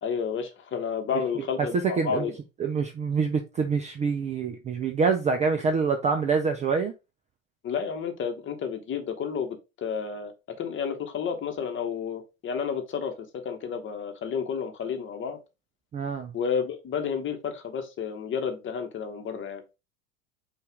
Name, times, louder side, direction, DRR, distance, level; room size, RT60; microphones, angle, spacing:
voice 1, 0.0-2.3 7.6-13.1 13.4-15.4 16.3-19.6, left 6 dB, 30° left, 6 dB, 1.0 m, -31 dB
voice 2, 1.7-2.3 2.6-6.9 15.9-16.3, right 5 dB, 20° right, 5 dB, 0.4 m, -26 dB
5.5 x 2.5 x 3.4 m, 0.26 s
hypercardioid pair, 85°, 41 cm